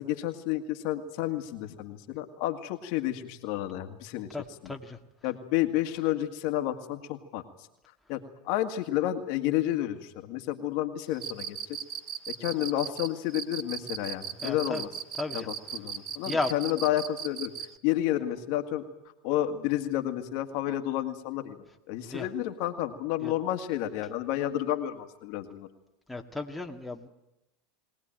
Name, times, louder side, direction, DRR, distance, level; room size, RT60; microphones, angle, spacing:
voice 1, 0.0-4.3 4.6-4.7 5.2-7.4 8.1-11.8 12.3-14.9 15.3-17.5 17.8-18.8 19.2-21.6 21.9-25.7, left 13 dB, 60° left, 6 dB, 1.9 m, -30 dB
voice 2, 4.3-5.0 14.4-14.8 15.2-15.5 16.3-16.5 22.1-22.3 23.2-23.3 26.1-27.1, left 3 dB, 5° left, 1 dB, 1.9 m, -34 dB
Cricket, 11.1-17.7, right 9 dB, 40° right, 1.0 m, -37 dB
22.0 x 18.0 x 9.0 m, 0.94 s
supercardioid pair, 115°, 0 cm